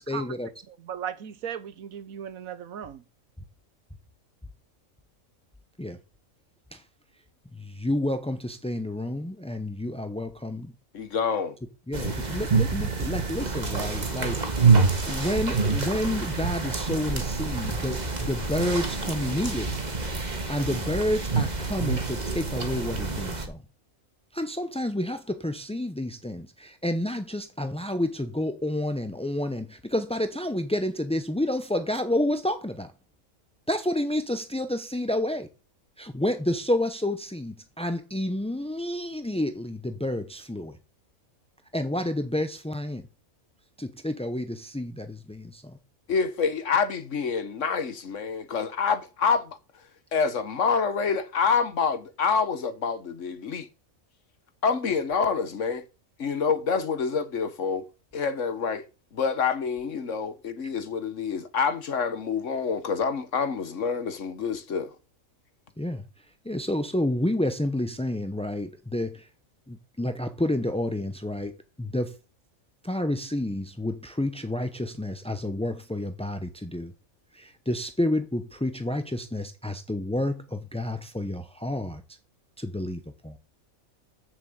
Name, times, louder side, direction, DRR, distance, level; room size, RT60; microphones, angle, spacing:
voice 1, 0.1-0.5 5.8-6.0 6.7-6.8 7.5-10.7 11.9-14.7 15.1-19.8 20.5-23.6 24.3-32.9 33.7-35.5 36.0-40.8 41.7-43.1 43.8-45.8 65.8-66.0 66.4-69.3 69.7-72.1 72.8-76.9 77.3-82.0 82.6-83.4, left 1 dB, 10° left, 0.4 m, -29 dB
voice 2, 0.9-3.0 13.5-13.8, right 8 dB, 75° right, 1.3 m, -37 dB
voice 3, 10.9-11.5 46.1-49.6 50.1-53.7 54.6-55.8 56.2-57.8 58.1-58.8 59.1-64.9, left 5 dB, 60° left, 1.5 m, -27 dB
sound 1, 11.9-23.5, right 4 dB, 30° right, 1.7 m, -27 dB
7.2 x 6.8 x 7.9 m
omnidirectional pair, 1.5 m